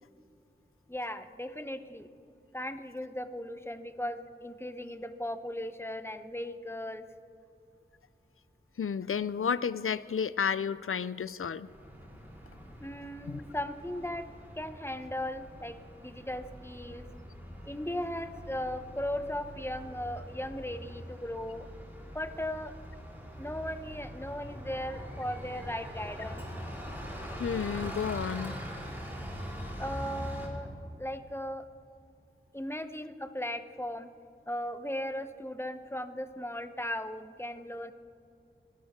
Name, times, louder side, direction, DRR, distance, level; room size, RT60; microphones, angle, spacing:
voice 1, 0.9-2.1 2.5-7.0 12.8-14.3 14.6-17.1 17.7-21.7 22.1-22.7 23.4-26.4 29.8-30.7 31.0-31.7 32.5-34.1 34.5-37.9, left 1 dB, 10° left, 9 dB, 1.0 m, -37 dB
voice 2, 8.8-11.7 13.3-13.4 27.4-28.6, left 7 dB, 90° left, 17 dB, 0.4 m, -31 dB
Bus, 11.6-30.5, equal, 10° right, 4.4 m, -43 dB
29.0 x 12.5 x 3.7 m, 2.6 s
wide cardioid pair, 40°, 21 cm